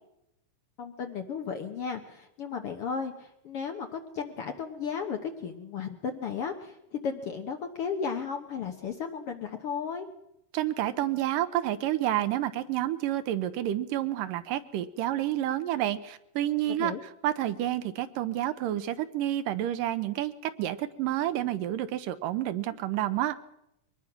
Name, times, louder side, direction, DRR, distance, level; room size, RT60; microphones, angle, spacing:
voice 1, 0.8-10.1 16.7-17.0, left 6 dB, 65° left, 5 dB, 1.5 m, -34 dB
voice 2, 10.5-17.0 17.2-23.4, right 13 dB, 85° right, 12 dB, 2.5 m, -29 dB
23.0 x 19.5 x 5.9 m, 0.84 s
omnidirectional pair, 3.8 m